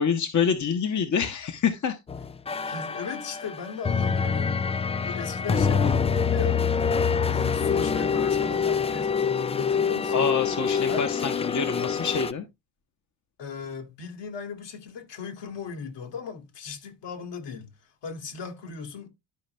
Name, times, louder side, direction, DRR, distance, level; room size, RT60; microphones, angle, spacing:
voice 1, 0.0-2.0 10.1-12.4, left 6 dB, 35° left, 1.3 m, -26 dB
sound 1, 2.1-12.3, left 6 dB, 15° left, 0.4 m, -25 dB
voice 2, 2.6-4.6 5.0-6.6 7.2-10.3 10.9-11.1 13.4-17.7 18.0-19.1, left 5 dB, 55° left, 2.4 m, -37 dB
12.0 x 5.0 x 3.3 m
hypercardioid pair, 55°, 50 cm